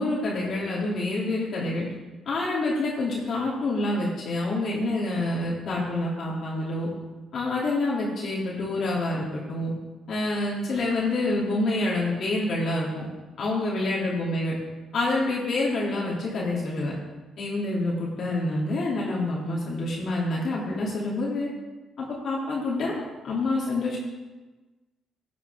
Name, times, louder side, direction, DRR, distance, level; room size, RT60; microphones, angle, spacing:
voice 1, 0.0-1.9 2.3-6.9 7.3-9.7 10.1-13.1 13.4-14.6 14.9-16.9 17.4-21.5 22.0-23.0 23.2-24.0, left 2 dB, 60° left, -5 dB, 2.6 m, -27 dB
12.0 x 8.4 x 3.5 m, 1.2 s
cardioid pair, 90°, 0 cm